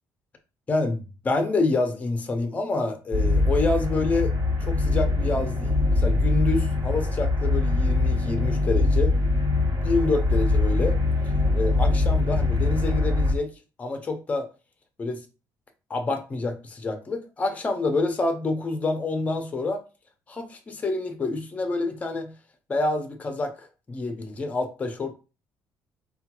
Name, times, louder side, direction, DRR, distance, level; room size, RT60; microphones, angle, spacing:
voice 1, 0.7-4.3 4.6-9.2 9.8-11.0 11.5-13.5 13.8-14.5 15.0-15.2 15.9-19.8 20.3-22.3 22.7-25.1, left 3 dB, 20° left, 0.6 m, -27 dB
sound 1, 3.1-13.3, left 2 dB, 50° right, 1.0 m, -23 dB
4.8 x 2.2 x 2.9 m
cardioid pair, 160°, 7 cm